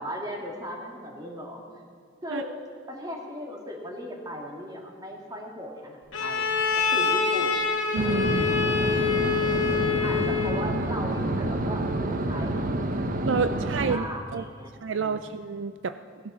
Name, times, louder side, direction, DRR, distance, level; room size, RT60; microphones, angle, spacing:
voice 1, 0.0-1.6 2.2-2.5 2.9-6.5 6.8-7.5 10.0-13.6 13.9-15.4, equal, 20° right, -1 dB, 2.4 m, -37 dB
Bowed string instrument, 6.1-10.7, left 6 dB, 70° left, 2.3 m, -26 dB
sound 1, 7.9-14.0, right 2 dB, 45° right, 0.8 m, -28 dB
voice 2, 7.9-8.5 13.2-14.1 14.3-14.5 14.8-16.0, right 5 dB, 70° right, 11 dB, 0.4 m, -29 dB
17.0 x 12.0 x 5.7 m, 2.1 s
head